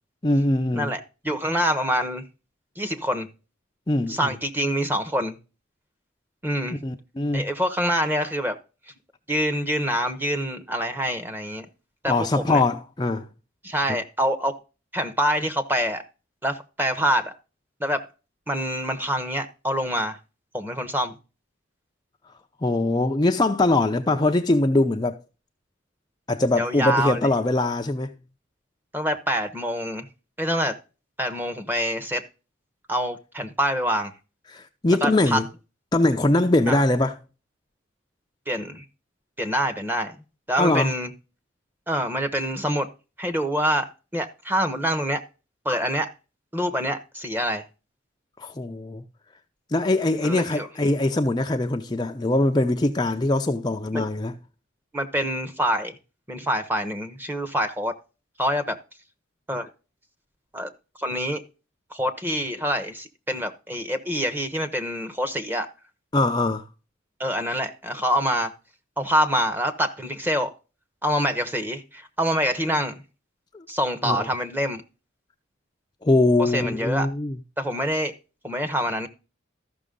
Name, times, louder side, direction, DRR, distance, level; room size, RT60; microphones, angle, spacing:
voice 1, 0.2-0.9 3.9-4.3 6.8-7.4 12.1-13.3 13.9-14.0 22.6-25.2 26.3-28.1 34.5-35.5 35.9-37.2 40.6-40.9 48.4-49.0 49.7-54.3 66.1-66.6 73.5-73.6 74.0-74.3 76.0-77.4, left 2 dB, 20° left, 0.6 m, -22 dB
voice 2, 0.7-2.2 2.8-3.3 4.1-5.4 6.4-6.8 7.3-8.6 9.3-11.7 12.0-12.1 12.4-12.6 13.6-14.6 14.9-16.0 16.4-17.3 17.8-18.1 18.5-20.2 20.5-21.2 26.6-27.3 28.9-30.1 30.4-30.8 31.2-32.2 32.9-34.1 35.0-35.4 36.7-36.8 38.5-38.8 39.4-40.1 40.5-41.1 41.9-42.9 43.2-45.2 45.6-46.1 46.5-47.6 50.2-50.7 53.9-54.0 54.9-56.0 56.3-57.9 58.4-58.8 59.5-59.7 60.5-60.7 61.0-61.4 61.9-65.7 67.2-68.5 69.0-70.5 71.0-72.9 73.7-74.8 76.4-77.1 77.6-78.1 78.4-79.1, equal, 10° right, 1.1 m, -26 dB
13.5 x 6.1 x 3.8 m
head